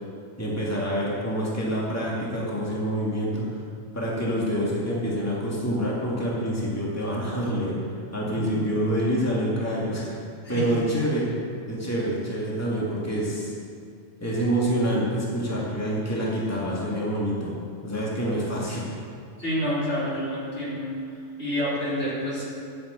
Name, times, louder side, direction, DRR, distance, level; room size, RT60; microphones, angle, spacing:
voice 1, 0.4-3.4 3.9-7.7 8.1-10.2 10.5-11.3 11.7-13.5 14.2-17.5 17.8-18.8, equal, 15° left, -6 dB, 2.6 m, -26 dB
voice 2, 19.4-20.9 21.4-22.4, equal, 75° left, -9 dB, 4.8 m, -28 dB
13.0 x 8.2 x 8.5 m, 2.3 s
omnidirectional pair, 1.2 m